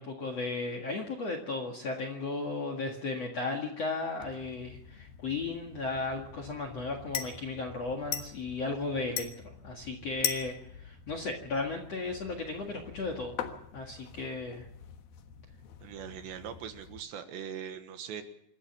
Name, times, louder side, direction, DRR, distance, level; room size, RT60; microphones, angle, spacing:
voice 1, 0.0-9.3 9.6-13.4 13.7-14.7, left 3 dB, 50° left, 5 dB, 2.2 m, -35 dB
sound 1, 4.2-17.0, left 9 dB, 65° left, 2.8 m, -42 dB
voice 2, 15.8-18.2, right 8 dB, 70° right, 7 dB, 3.5 m, -41 dB
27.0 x 13.0 x 7.3 m, 0.75 s
omnidirectional pair, 5.5 m